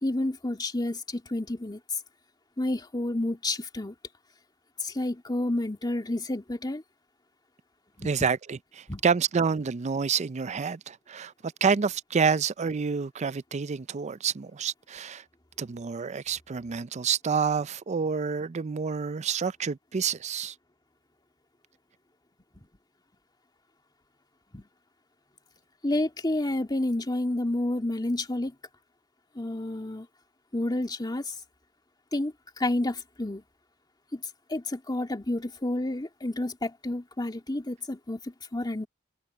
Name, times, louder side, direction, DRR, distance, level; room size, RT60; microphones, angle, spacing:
voice 1, 0.0-1.8 2.6-3.9 4.8-6.8 8.0-8.1 8.9-9.0 24.5-24.6 25.8-28.5 29.4-30.1 30.5-31.3 32.1-33.4 34.1-34.2 34.5-38.9, left 1 dB, 20° left, 2.3 m, -30 dB
voice 2, 8.0-15.2 15.6-20.5, right 6 dB, 35° right, 0.4 m, -28 dB
head